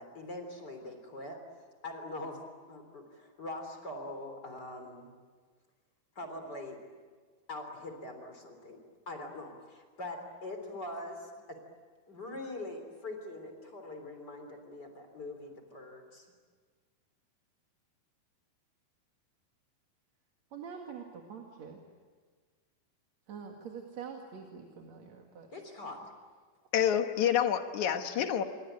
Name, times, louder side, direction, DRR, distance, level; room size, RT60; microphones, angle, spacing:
voice 1, 0.0-1.4 1.8-2.4 2.7-5.1 6.2-6.8 7.5-8.8 9.1-11.6 12.1-16.3 25.5-26.0, left 2 dB, 30° left, 5 dB, 3.8 m, -43 dB
voice 2, 20.5-21.8 23.3-25.5 27.9-28.3, right 6 dB, 50° right, 2 dB, 3.0 m, -45 dB
voice 3, 26.7-28.4, left 9 dB, 60° left, 7 dB, 2.5 m, -28 dB
28.5 x 24.0 x 8.9 m, 1.5 s
omnidirectional pair, 4.2 m